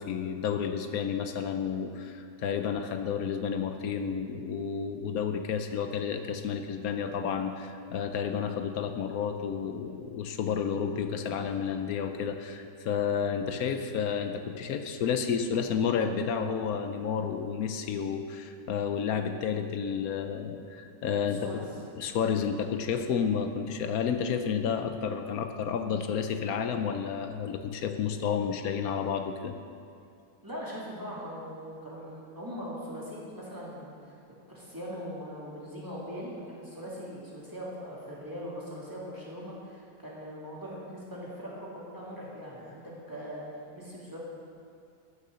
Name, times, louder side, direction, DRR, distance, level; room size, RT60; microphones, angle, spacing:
voice 1, 0.0-21.5 22.0-29.6, left 7 dB, 80° left, 7 dB, 1.2 m, -31 dB
voice 2, 21.3-21.7 30.4-34.1 34.5-44.2, equal, 15° right, -6 dB, 2.6 m, -41 dB
14.5 x 6.7 x 6.3 m, 2.5 s
omnidirectional pair, 1.5 m